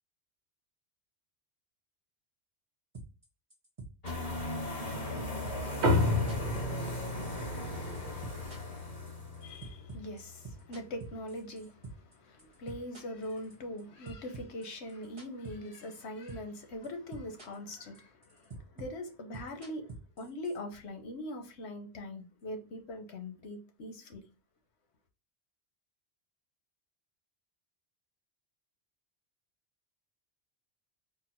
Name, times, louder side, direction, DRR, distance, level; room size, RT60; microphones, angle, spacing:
sound 1, 2.9-3.3 3.5-4.9 5.2-7.1 7.4-7.7 7.9-12.1 12.4-13.8 14.1-16.0 16.3-16.6 16.8-17.7 17.9-20.6, right 3 dB, 30° right, 1.0 m, -46 dB
sound 2, 4.0-9.5, left 1 dB, 60° left, 2.5 m, -37 dB
sound 3, 5.8-10.6, left 2 dB, 80° right, 1.3 m, -33 dB
voice 1, 9.4-24.2, left 1 dB, 80° left, 1.2 m, -42 dB
4.4 x 2.2 x 4.3 m
omnidirectional pair, 1.1 m